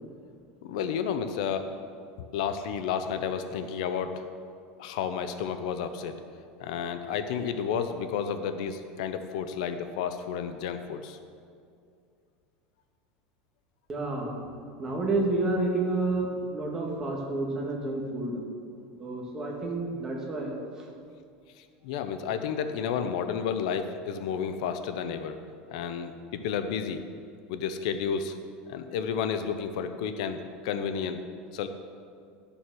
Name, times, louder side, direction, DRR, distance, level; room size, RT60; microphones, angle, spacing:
voice 1, 0.6-1.7 2.3-4.3 4.8-6.2 6.6-11.2 21.6-25.4 25.7-27.0 27.5-28.4 28.7-31.2 31.5-31.7, left 7 dB, 65° left, 9 dB, 0.7 m, -31 dB
voice 2, 13.9-14.3 14.8-18.4 19.0-20.5, right 2 dB, 15° right, -2 dB, 1.6 m, -29 dB
11.5 x 6.9 x 6.2 m, 2.3 s
supercardioid pair, 180°, 4 cm